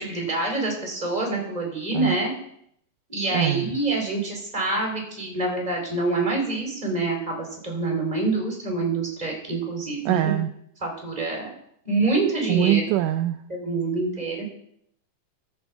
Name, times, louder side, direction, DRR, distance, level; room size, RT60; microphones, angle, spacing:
voice 1, 0.0-2.3 3.1-10.3 10.8-11.5 11.8-12.9 13.5-14.5, right 3 dB, 10° right, 0 dB, 3.1 m, -26 dB
voice 2, 3.3-3.7 10.1-10.5 12.5-13.4, right 13 dB, 80° right, 8 dB, 2.0 m, -23 dB
14.0 x 6.9 x 4.6 m, 0.70 s
omnidirectional pair, 3.9 m